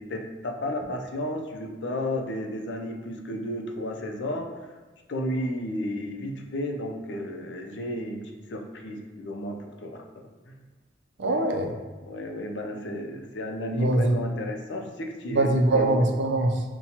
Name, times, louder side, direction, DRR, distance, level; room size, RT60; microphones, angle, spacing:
voice 1, 0.0-4.5 5.1-8.2 8.5-10.6 12.0-15.9, left 1 dB, 75° left, 3 dB, 0.5 m, -33 dB
voice 2, 11.2-11.7 13.8-14.1 15.3-16.6, right 2 dB, 80° right, 4 dB, 0.5 m, -22 dB
5.6 x 2.2 x 2.8 m, 1.2 s
head